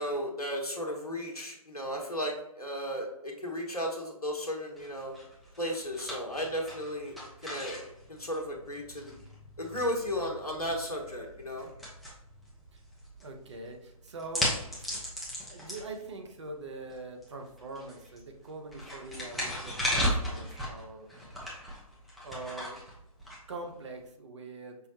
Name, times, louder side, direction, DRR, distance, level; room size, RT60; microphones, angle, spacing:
voice 1, 0.0-5.1 5.6-7.2 7.4-9.2 9.6-11.7, equal, 80° left, 1 dB, 1.0 m, -34 dB
sound 1, 4.8-24.0, equal, ahead, 0.5 m, -38 dB
voice 2, 13.2-14.9 15.5-21.4 22.2-22.8 23.5-24.8, right 2 dB, 50° right, 4 dB, 0.7 m, -43 dB
5.5 x 2.1 x 2.8 m, 0.85 s
figure-of-eight pair, 140°, 19 cm